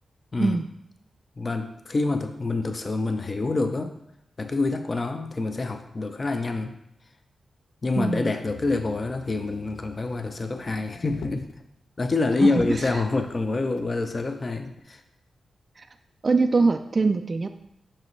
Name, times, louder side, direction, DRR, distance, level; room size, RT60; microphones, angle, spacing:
voice 1, 1.4-4.0 4.4-6.7 7.8-11.5 12.0-15.0, left 3 dB, 35° left, 7 dB, 0.5 m, -26 dB
voice 2, 8.0-8.3 12.4-12.5 15.8-15.9 16.2-17.5, right 3 dB, 35° right, 6 dB, 0.3 m, -22 dB
Motor vehicle (road), 8.5-11.6 12.1-12.2 12.5-13.9 14.8-14.9, left 5 dB, 85° left, 0.5 m, -43 dB
7.4 x 5.8 x 3.1 m, 0.76 s
wide cardioid pair, 115°, 0 cm